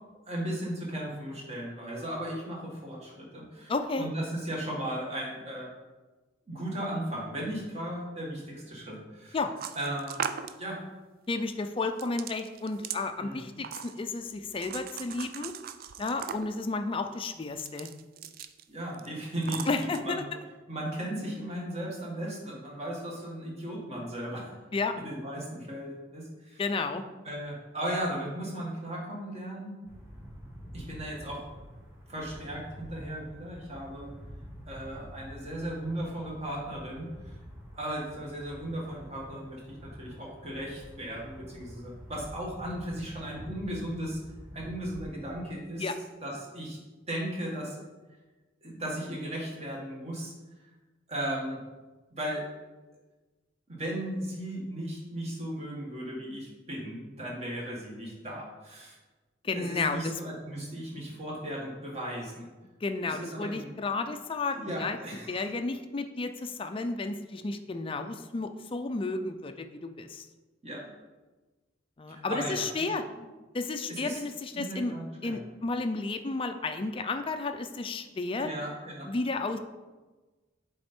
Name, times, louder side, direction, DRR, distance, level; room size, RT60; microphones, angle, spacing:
voice 1, 0.3-5.7 6.5-9.4 9.8-10.2 10.6-10.8 13.2-13.6 18.7-20.3 20.7-24.6 25.0-26.6 27.2-29.7 30.7-31.4 32.1-34.1 34.7-37.3 37.7-44.2 44.5-45.9 46.2-46.8 47.1-47.8 48.6-50.3 51.1-51.6 52.1-52.4 53.7-59.0 59.6-62.5 63.1-63.7 64.5-65.4 70.6-70.9 72.1-72.9 73.9-74.2 74.5-75.4 78.4-79.1, right 1 dB, 35° right, -2 dB, 1.8 m, -36 dB
voice 2, 3.7-4.1 9.3-9.5 11.3-15.5 16.0-17.9 19.7-20.2 24.7-25.0 26.6-27.0 45.8-46.0 59.4-60.1 62.8-65.0 65.3-70.3 72.0-73.0 73.5-74.9 75.2-78.5 79.1-79.6, left 3 dB, 30° left, 7 dB, 0.4 m, -32 dB
sound 1, 9.6-10.6 12.0-13.0 13.6-14.2 14.6-16.6 17.5-18.6 18.9-19.1 19.4-20.0, right 8 dB, 50° right, 0.4 m, -38 dB
sound 2, 29.8-45.4, equal, 10° right, 1.9 m, -47 dB
7.7 x 4.0 x 4.4 m, 1.2 s
head